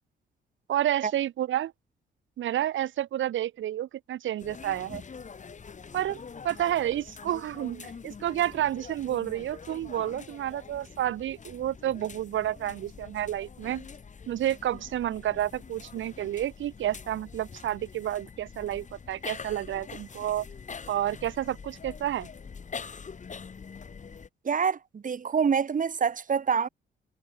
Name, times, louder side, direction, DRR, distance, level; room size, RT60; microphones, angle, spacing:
voice 1, 0.7-1.7 2.4-5.0 5.9-13.8 14.3-20.5 20.9-22.3, right 12 dB, 75° right, 2.8 m, -30 dB
sound 1, 4.4-24.3, left 5 dB, 40° left, 4.1 m, -45 dB
voice 2, 24.4-26.7, right 6 dB, 40° right, 3.1 m, -26 dB
cardioid pair, 90°, 20 cm